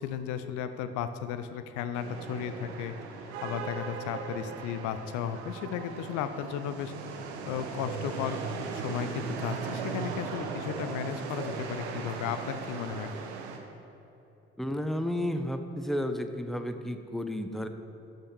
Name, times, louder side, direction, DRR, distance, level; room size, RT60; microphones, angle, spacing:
voice 1, 0.0-2.9 3.2-8.4 8.7-13.1, left 8 dB, 65° left, 10 dB, 0.7 m, -35 dB
sound 1, 1.9-13.6, right 5 dB, 75° right, 1.1 m, -38 dB
voice 2, 14.6-17.7, equal, ahead, 8 dB, 0.9 m, -32 dB
13.0 x 6.6 x 6.2 m, 3.0 s
figure-of-eight pair, 45°, 32 cm